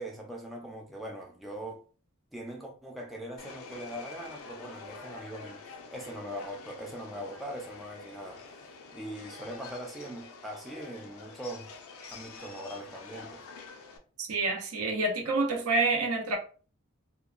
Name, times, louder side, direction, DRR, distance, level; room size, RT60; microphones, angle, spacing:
voice 1, 0.0-1.8 2.3-5.6 5.9-11.7 12.1-13.4, right 1 dB, ahead, 0.4 m, -41 dB
Subway metro underground, 3.4-14.0, left 4 dB, 80° left, 0.4 m, -47 dB
voice 2, 14.2-16.4, right 3 dB, 85° right, 0.6 m, -28 dB
2.9 x 2.1 x 2.4 m
head